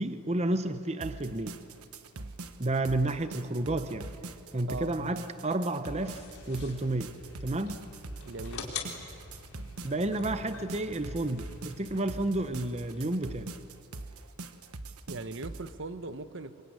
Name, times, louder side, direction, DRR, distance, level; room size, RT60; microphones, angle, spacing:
voice 1, 0.0-1.6 2.6-4.1 4.5-7.8 9.8-13.5, right 2 dB, 30° right, 10 dB, 0.9 m, -31 dB
sound 1, 1.0-15.7, right 2 dB, 85° right, 1.3 m, -43 dB
sound 2, 6.0-13.0, left 4 dB, 85° left, 4.0 m, -45 dB
voice 2, 8.3-8.7 15.1-16.6, right 2 dB, 55° right, 11 dB, 1.0 m, -39 dB
25.5 x 23.0 x 9.7 m, 2.4 s
head